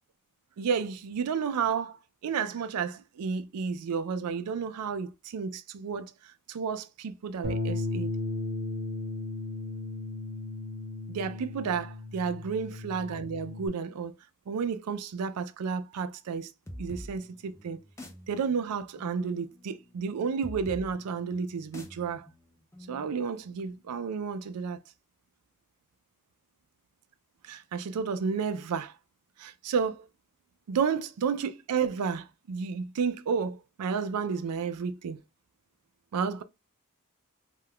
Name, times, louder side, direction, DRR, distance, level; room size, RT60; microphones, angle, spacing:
voice 1, 0.6-8.1 11.1-14.2 14.5-16.5 16.8-17.8 18.3-22.3 22.9-24.8 27.4-28.9 29.4-30.1 30.7-35.2 36.1-36.4, right 6 dB, 90° right, 0.4 m, -31 dB
Bass guitar, 7.4-13.7, left 2 dB, 45° right, 0.9 m, -35 dB
sound 1, 16.7-24.0, equal, 15° left, 0.5 m, -47 dB
2.3 x 2.2 x 3.3 m
head